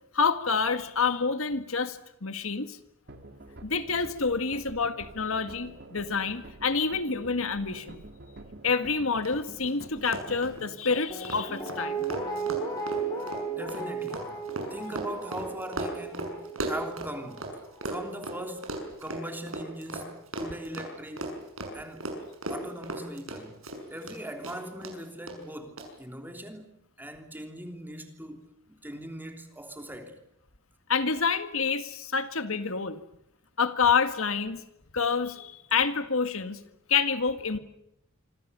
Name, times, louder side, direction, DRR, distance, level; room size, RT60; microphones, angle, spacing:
voice 1, 0.1-2.8 3.6-8.0 8.6-12.1 30.9-33.0 33.6-34.6 34.9-36.6 36.9-37.6, left 5 dB, 70° left, 1.8 m, -28 dB
sound 1, 3.1-10.8, right 1 dB, 55° right, 2.6 m, -47 dB
Run, 9.2-9.3 9.6-9.7 10.0-17.5 17.8-24.2 24.4-24.9 25.3-25.4 25.8-25.9, right 1 dB, 75° right, 6.4 m, -36 dB
Guitar, 11.1-18.1 18.4-18.5, right 4 dB, 20° left, 7.3 m, -35 dB
voice 2, 13.5-14.3 14.7-16.4 16.6-17.5 17.9-18.7 19.0-21.3 21.7-22.1 22.5-23.6 23.9-30.2, right 1 dB, 10° right, 3.2 m, -40 dB
26.5 x 26.0 x 6.9 m
head